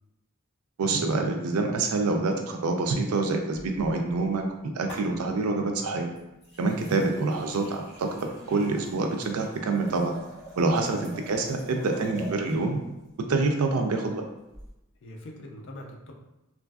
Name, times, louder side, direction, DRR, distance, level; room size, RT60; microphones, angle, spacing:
voice 1, 0.8-6.1 6.6-8.1 8.5-10.1 10.6-12.8 13.3-14.2, right 3 dB, 80° right, 3 dB, 0.4 m, -26 dB
sound 1, 3.5-4.5 4.9-5.5 6.1-12.7 14.5-14.7, right 1 dB, 25° left, 1.3 m, -46 dB
voice 2, 15.0-16.1, left 1 dB, 55° left, 0 dB, 0.5 m, -43 dB
3.0 x 2.5 x 2.3 m, 0.95 s
head